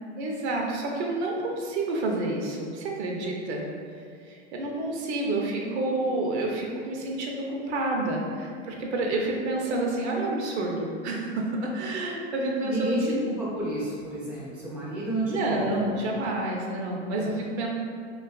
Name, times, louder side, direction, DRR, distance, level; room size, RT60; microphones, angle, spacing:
voice 1, 0.2-3.7 4.2-13.0 15.2-17.7, right 2 dB, 70° right, -1 dB, 0.6 m, -29 dB
voice 2, 12.6-15.9, right 1 dB, 5° right, -8 dB, 0.3 m, -30 dB
2.7 x 2.4 x 2.3 m, 2.1 s
hypercardioid pair, 115°, 35 cm